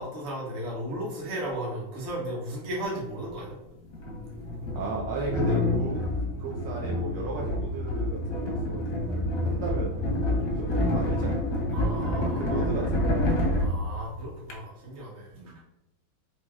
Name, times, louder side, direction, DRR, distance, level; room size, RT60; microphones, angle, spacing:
voice 1, 0.0-3.6 11.7-12.7 13.6-15.3, right 1 dB, 40° right, -4 dB, 1.0 m, -35 dB
sound 1, 2.9-3.0 3.9-14.5, left 1 dB, 65° left, 0.8 m, -28 dB
voice 2, 4.7-6.1 6.4-9.9 10.5-11.6 12.2-13.3 15.3-15.5, right 4 dB, 70° right, -3 dB, 1.1 m, -36 dB
4.5 x 2.7 x 2.4 m, 0.89 s
omnidirectional pair, 2.4 m